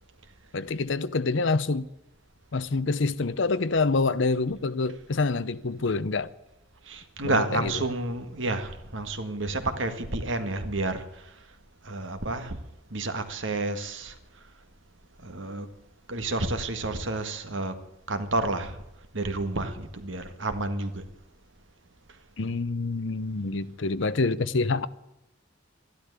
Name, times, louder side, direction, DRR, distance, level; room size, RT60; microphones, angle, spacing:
voice 1, 0.5-1.9 2.5-6.3 7.2-7.7 22.4-24.9, left 3 dB, 65° left, 0.7 m, -26 dB
voice 2, 6.9-11.3 11.8-12.6 12.9-14.2 15.2-15.7 16.1-17.8 18.1-18.8 19.1-21.0, right 2 dB, 65° right, 1.8 m, -30 dB
13.0 x 12.0 x 8.2 m
head